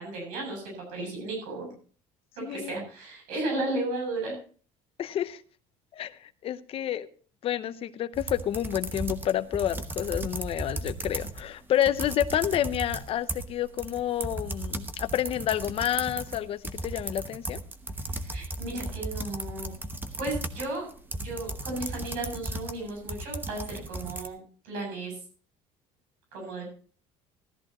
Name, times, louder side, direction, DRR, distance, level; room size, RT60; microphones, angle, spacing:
voice 1, 0.0-1.7 2.4-4.3 18.1-19.7 20.2-20.9 21.2-24.4 24.6-25.2 26.3-26.7, right 2 dB, 85° right, 0 dB, 7.8 m, -34 dB
voice 2, 2.4-2.7 5.0-5.4 5.9-7.1 7.4-17.6, left 11 dB, 45° left, 13 dB, 0.7 m, -29 dB
sound 1, 8.1-11.5 11.7-24.3, right 2 dB, 15° right, 1.0 m, -36 dB
15.0 x 13.5 x 3.0 m, 0.41 s
cardioid pair, 130°, 13 cm